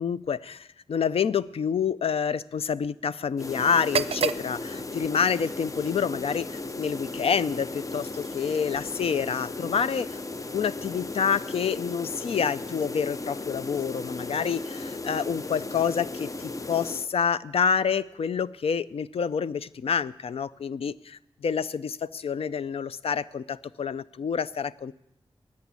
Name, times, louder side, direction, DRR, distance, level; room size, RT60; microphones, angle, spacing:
voice 1, 0.0-10.2 10.5-24.9, left 7 dB, 80° left, 16 dB, 0.4 m, -28 dB
sound 1, 3.4-17.1, left 2 dB, 35° left, 0.6 m, -36 dB
sound 2, 3.7-11.6, right 7 dB, 85° right, 0.4 m, -37 dB
14.5 x 9.7 x 8.2 m, 0.87 s
wide cardioid pair, 80°, 10 cm